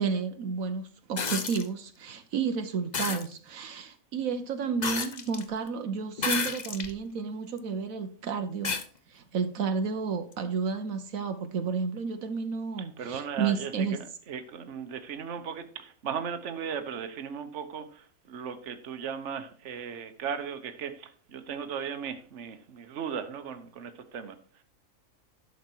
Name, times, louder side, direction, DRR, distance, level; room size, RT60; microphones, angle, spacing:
voice 1, 0.0-8.8 9.1-14.0, right 5 dB, 80° right, 8 dB, 1.3 m, -31 dB
sound 1, 1.2-1.7 2.9-3.3 4.8-5.4 6.2-6.9 7.6-7.7 8.6-8.9 10.3-10.4, left 4 dB, 35° left, 0.9 m, -31 dB
voice 2, 12.8-24.6, right 7 dB, 60° right, 9 dB, 1.3 m, -37 dB
11.5 x 6.6 x 4.5 m, 0.42 s
omnidirectional pair, 1.4 m